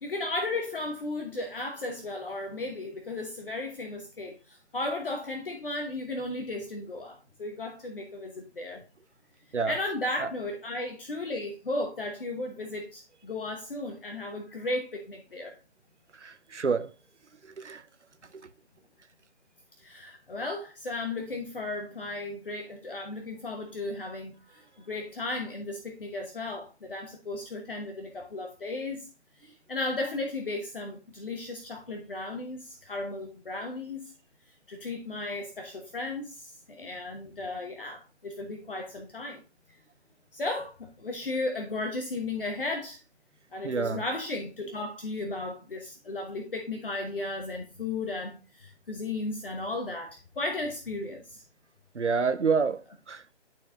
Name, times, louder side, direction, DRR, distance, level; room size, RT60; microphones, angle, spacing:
voice 1, 0.0-8.8 9.6-15.6 19.8-29.1 29.4-34.1 34.7-39.4 40.3-43.0 43.5-51.4, left 2 dB, 50° left, 1.1 m, -35 dB
voice 2, 16.2-16.9 17.6-17.8 43.6-44.0 51.9-53.3, right 5 dB, 85° right, 0.8 m, -28 dB
12.0 x 4.4 x 2.5 m
figure-of-eight pair, 150°, 35 cm